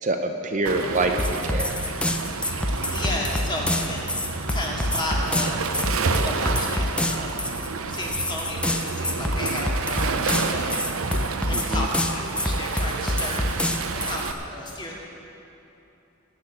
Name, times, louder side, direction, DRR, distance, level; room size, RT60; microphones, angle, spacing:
voice 1, 0.0-1.7 11.5-11.8, right 2 dB, 35° right, 4 dB, 0.7 m, -26 dB
Waves surf, 0.6-14.3, right 4 dB, 80° right, 0.8 m, -29 dB
sound 1, 1.2-14.3, left 1 dB, 5° left, 0.6 m, -27 dB
voice 2, 2.2-2.6 2.9-4.2 4.5-5.6 6.2-7.4 7.9-13.5 13.9-14.9, left 1 dB, 20° left, -3 dB, 2.2 m, -33 dB
18.5 x 6.3 x 8.4 m, 3.0 s
head